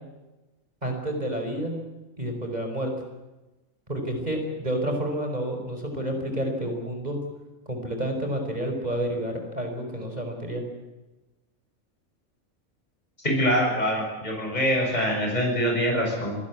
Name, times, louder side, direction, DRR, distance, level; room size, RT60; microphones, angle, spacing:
voice 1, 0.8-1.8 2.2-2.9 3.9-7.2 7.7-10.6, right 1 dB, 30° right, 3 dB, 5.2 m, -29 dB
voice 2, 13.2-16.4, equal, 30° left, 0 dB, 7.3 m, -24 dB
26.0 x 19.0 x 8.5 m, 1.1 s
omnidirectional pair, 1.4 m